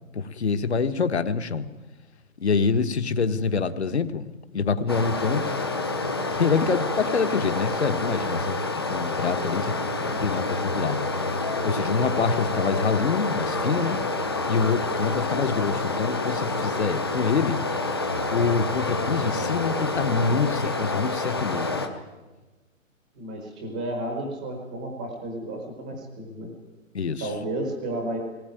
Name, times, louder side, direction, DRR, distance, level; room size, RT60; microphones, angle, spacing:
voice 1, 0.1-1.7 2.4-5.6 6.3-11.0 11.6-14.0 14.5-17.6 18.3-21.8 26.9-27.3, left 5 dB, 55° left, 10 dB, 1.4 m, -26 dB
Stream, 4.9-21.9, left 2 dB, 20° left, 0.8 m, -28 dB
voice 2, 23.1-26.5 27.2-28.2, right 1 dB, 5° right, 2 dB, 1.0 m, -32 dB
19.0 x 18.5 x 9.1 m, 1.2 s
hypercardioid pair, 180°, 40 cm